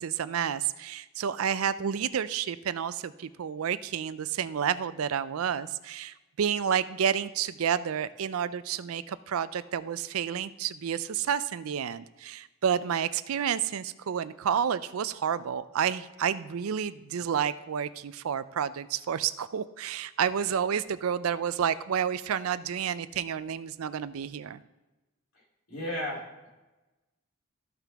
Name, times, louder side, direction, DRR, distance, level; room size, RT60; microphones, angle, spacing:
voice 1, 0.0-24.6, right 8 dB, 85° right, 15 dB, 0.4 m, -30 dB
voice 2, 25.7-26.5, left 1 dB, 80° left, -4 dB, 3.4 m, -35 dB
14.0 x 5.8 x 3.5 m, 1.1 s
head